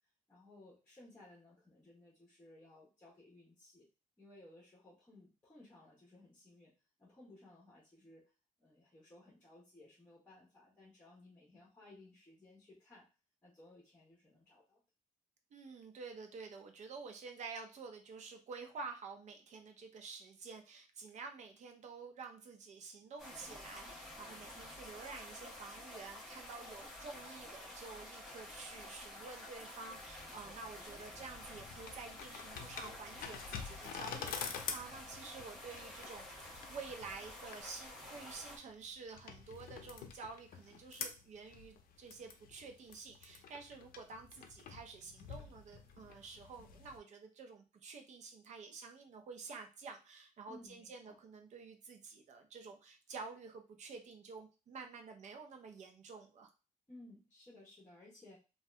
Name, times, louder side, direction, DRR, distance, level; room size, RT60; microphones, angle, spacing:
voice 1, 0.3-3.9 4.2-6.7 7.0-8.3 8.6-13.1 13.4-14.8 50.5-51.2 56.9-58.4, left 2 dB, 15° left, -5 dB, 0.9 m, -59 dB
voice 2, 15.5-56.5, right 4 dB, 55° right, 5 dB, 0.6 m, -50 dB
sound 1, 23.2-38.6, left 1 dB, 5° right, 1.2 m, -50 dB
sound 2, 31.3-47.0, left 6 dB, 75° left, 0.5 m, -48 dB
2.7 x 2.3 x 3.2 m, 0.32 s
cardioid pair, 135°, 15 cm